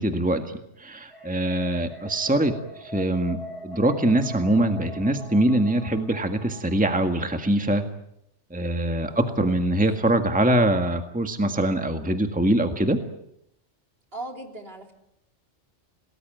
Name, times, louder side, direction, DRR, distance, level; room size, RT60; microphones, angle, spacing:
voice 1, 0.0-2.5 2.8-3.4 3.6-7.8 8.5-13.0, right 1 dB, 5° right, 6 dB, 1.8 m, -23 dB
sound 1, 1.1-7.5, equal, 25° right, 7.7 m, -42 dB
voice 2, 14.1-14.9, right 1 dB, 50° right, 4 dB, 3.6 m, -38 dB
28.0 x 19.5 x 9.1 m, 0.79 s
omnidirectional pair, 1.2 m